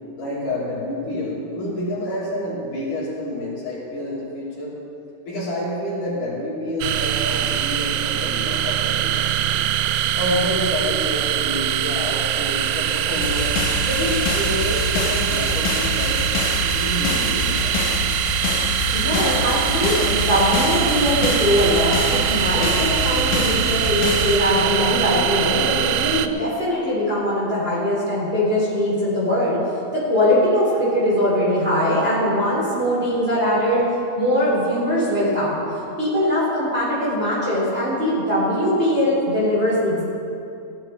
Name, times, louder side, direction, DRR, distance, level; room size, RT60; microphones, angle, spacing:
voice 1, 0.2-4.7 5.2-9.3 10.2-16.2 16.5-18.0, left 1 dB, 60° left, -7 dB, 4.5 m, -28 dB
sound 1, 6.8-26.3, right 11 dB, 80° right, 2.0 m, -23 dB
sound 2, 13.2-24.4, left 4 dB, 90° left, 3.0 m, -26 dB
voice 2, 18.9-29.6 29.9-33.8 34.2-35.6 36.0-40.0, equal, 15° right, -8 dB, 4.2 m, -21 dB
16.0 x 12.0 x 4.7 m, 2.6 s
omnidirectional pair, 4.1 m